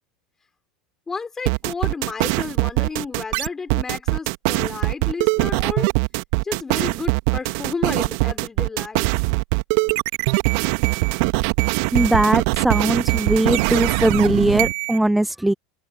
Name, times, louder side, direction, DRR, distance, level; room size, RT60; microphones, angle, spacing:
voice 1, 1.1-5.9 6.4-9.1, left 4 dB, 20° left, 5.3 m, -32 dB
sound 1, 1.5-15.0, right 31 dB, 60° right, 1.9 m, -21 dB
voice 2, 11.9-15.5, right 1 dB, 5° right, 0.9 m, -19 dB
figure-of-eight pair, 75°, 2 cm